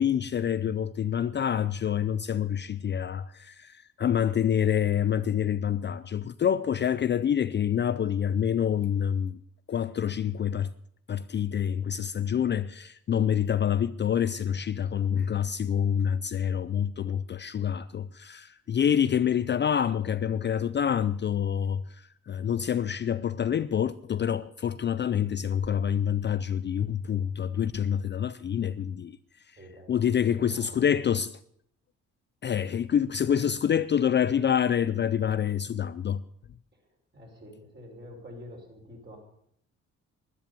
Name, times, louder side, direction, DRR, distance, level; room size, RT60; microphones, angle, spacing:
voice 1, 0.0-9.4 9.7-10.7 11.1-29.2 29.5-29.6 29.9-31.4 32.4-36.2, left 8 dB, 35° left, 0.5 m, -27 dB
voice 2, 29.6-30.8 36.7-39.2, equal, 35° right, 5.5 m, -47 dB
12.5 x 10.5 x 6.9 m
cardioid pair, 90°, 30 cm